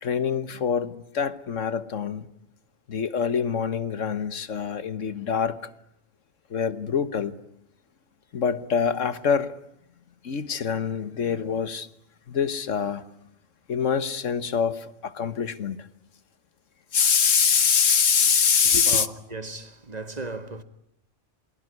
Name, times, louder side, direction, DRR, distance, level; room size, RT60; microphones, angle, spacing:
voice 1, 0.0-2.3 2.9-5.6 6.5-7.4 8.3-9.6 10.2-11.9 12.3-13.0 13.7-15.9 16.9-19.1, left 6 dB, 80° left, 1.7 m, -24 dB
voice 2, 18.9-20.6, right 3 dB, 35° right, 1.9 m, -36 dB
28.5 x 22.0 x 9.5 m
omnidirectional pair, 1.3 m